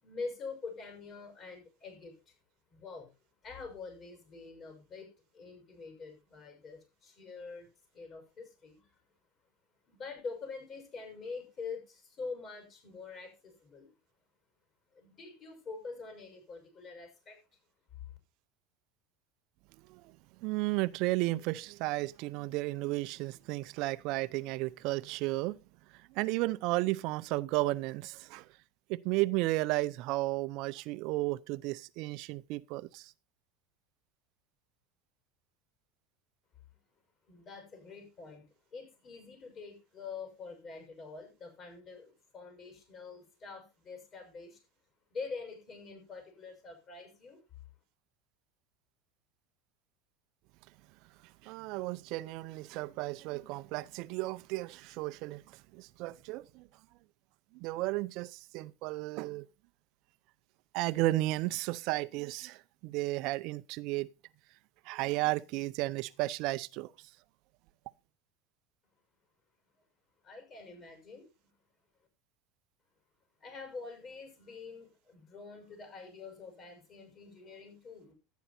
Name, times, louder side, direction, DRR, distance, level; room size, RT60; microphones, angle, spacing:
voice 1, 0.0-2.3 2.7-3.1 3.4-7.7 7.9-8.9 9.9-13.9 14.9-17.4 18.0-18.1 37.3-44.6 45.1-47.4 70.2-71.5 73.4-78.1, left 4 dB, 35° left, 6.4 m, -45 dB
voice 2, 20.4-25.6 26.1-28.5 28.9-33.1 51.4-56.7 57.5-59.5 60.7-64.1 64.9-66.9, right 19 dB, 60° right, 0.6 m, -33 dB
12.5 x 9.3 x 4.3 m
supercardioid pair, 130°, 0 cm